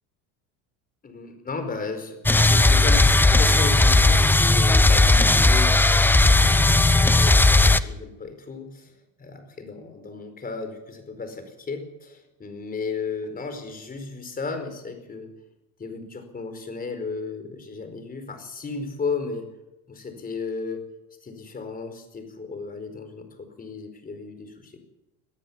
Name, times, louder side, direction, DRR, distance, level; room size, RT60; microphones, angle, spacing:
voice 1, 1.0-8.9 9.2-15.3 15.8-19.5 19.9-20.9 21.2-24.8, left 4 dB, 20° left, 7 dB, 4.8 m, -34 dB
sound 1, 2.3-7.8, left 2 dB, 5° left, 0.7 m, -16 dB
22.0 x 14.0 x 8.6 m, 0.95 s
supercardioid pair, 120°, 39 cm